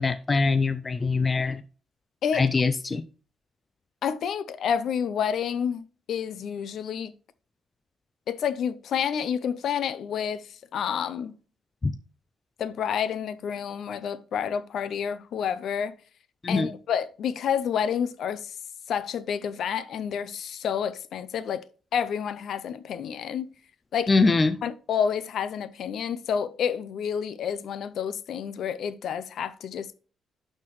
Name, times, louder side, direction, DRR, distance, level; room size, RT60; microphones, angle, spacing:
voice 1, 0.0-1.6 2.3-3.0 11.8-11.9 16.4-16.7 24.1-24.6, left 3 dB, 20° left, 0.3 m, -23 dB
voice 2, 4.0-7.1 8.3-11.4 12.6-16.0 16.5-18.5 18.9-21.6 21.9-23.5 23.9-24.1 24.6-29.9, left 8 dB, 55° left, 0.6 m, -29 dB
11.5 x 4.5 x 3.1 m
cardioid pair, 175°, 0 cm